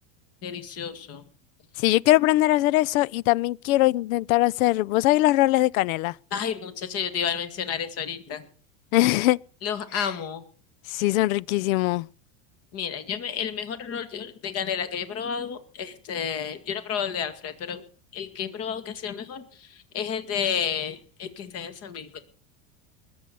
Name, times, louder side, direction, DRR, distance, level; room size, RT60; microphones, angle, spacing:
voice 1, 0.4-1.2 6.3-8.5 9.6-10.4 12.7-17.8 18.1-22.2, left 7 dB, 35° left, 2.0 m, -31 dB
voice 2, 1.8-6.1 8.9-9.4 9.9-10.1 10.9-12.1, left 17 dB, 85° left, 0.6 m, -21 dB
20.5 x 8.0 x 6.8 m
supercardioid pair, 155°, 40 cm